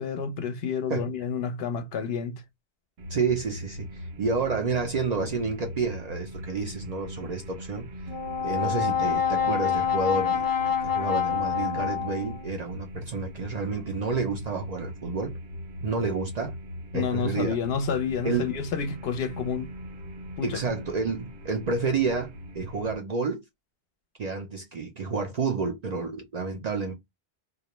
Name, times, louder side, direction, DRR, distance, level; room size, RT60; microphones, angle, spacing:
voice 1, 0.0-2.4 16.9-19.7 20.4-20.8, left 6 dB, 70° left, 0.7 m, -29 dB
sound 1, 3.0-22.9, equal, 85° right, 1.0 m, -40 dB
voice 2, 3.1-7.9 8.4-10.4 10.8-15.3 15.8-16.6 16.9-17.6 18.2-18.5 20.4-23.4 24.2-26.9, right 4 dB, 55° right, 0.5 m, -29 dB
Brass instrument, 8.1-12.5, left 8 dB, 35° left, 0.3 m, -26 dB
2.4 x 2.1 x 2.8 m
omnidirectional pair, 1.1 m